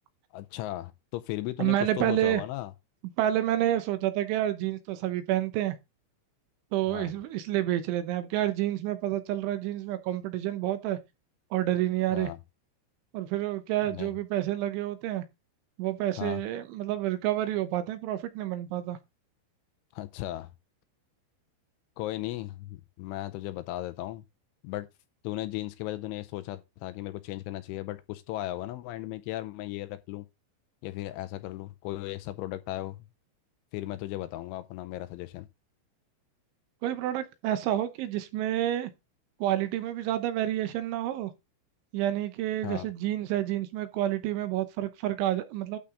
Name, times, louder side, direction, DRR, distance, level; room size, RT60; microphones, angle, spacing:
voice 1, 0.3-2.7 6.9-7.1 12.1-12.4 13.9-14.1 16.2-16.4 19.9-20.5 22.0-24.2 24.6-24.9 25.2-30.3 30.8-33.0 33.7-35.5 42.6-42.9, left 16 dB, 80° left, 2.9 m, -36 dB
voice 2, 1.6-2.4 3.2-5.8 6.7-11.0 11.5-12.3 13.1-15.2 15.8-19.0 36.8-38.9 39.4-41.3 41.9-45.8, right 13 dB, 75° right, 3.1 m, -29 dB
12.0 x 5.6 x 3.7 m
omnidirectional pair, 5.8 m